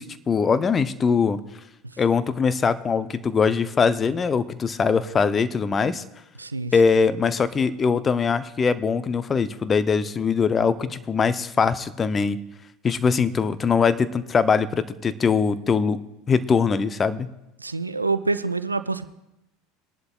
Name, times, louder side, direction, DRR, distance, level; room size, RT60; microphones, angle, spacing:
voice 1, 0.0-1.4 2.0-6.0 6.7-12.4 12.8-16.0 16.3-17.3, left 5 dB, 25° left, 13 dB, 0.6 m, -22 dB
voice 2, 6.4-6.7 17.6-19.1, right 3 dB, 85° right, 12 dB, 0.4 m, -26 dB
22.0 x 11.0 x 2.4 m, 0.89 s
figure-of-eight pair, 75°, 0 cm